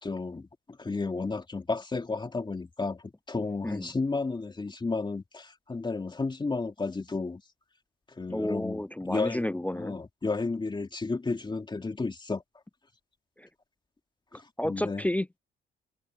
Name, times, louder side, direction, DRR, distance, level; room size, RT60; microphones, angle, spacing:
voice 1, 0.0-7.4 8.1-12.4 14.3-15.1, left 3 dB, 25° left, 2.8 m, -33 dB
voice 2, 8.3-9.9 13.4-13.5 14.6-15.4, left 1 dB, 5° left, 0.4 m, -31 dB
cardioid pair, 90°, 20 cm